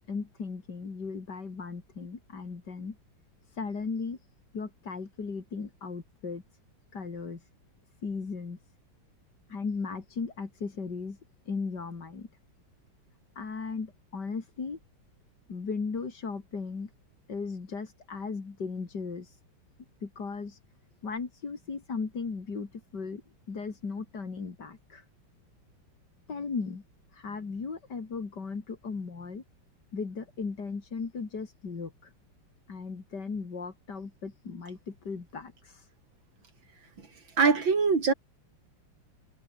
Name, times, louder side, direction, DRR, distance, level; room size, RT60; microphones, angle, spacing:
voice 1, 0.1-3.0 3.5-4.2 4.5-6.4 6.9-7.5 8.0-8.6 9.5-11.2 11.5-12.3 13.4-14.8 15.5-16.9 17.3-19.4 20.0-20.6 21.0-23.2 23.5-25.0 26.3-26.8 27.1-29.4 29.9-32.1 32.7-35.9, left 4 dB, 50° left, 3.5 m, -36 dB
voice 2, 37.4-38.1, right 5 dB, 60° right, 4.2 m, -22 dB
omnidirectional pair, 2.4 m